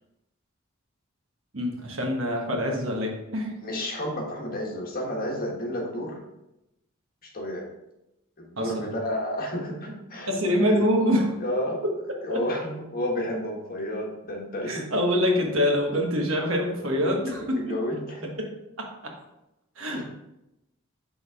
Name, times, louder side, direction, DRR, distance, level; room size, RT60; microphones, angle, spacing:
voice 1, 1.5-3.5 8.6-8.8 10.3-11.3 11.8-12.0 12.3-12.4 14.7-17.8 18.4-18.5 18.8-18.9 19.8-20.0, equal, 70° right, 1 dB, 1.3 m, -25 dB
voice 2, 3.6-6.2 7.3-7.7 8.4-10.8 11.4-11.9 12.2-14.9 16.8-18.3 19.9-20.0, left 1 dB, 45° left, 0 dB, 1.4 m, -31 dB
6.2 x 3.9 x 4.8 m, 0.89 s
head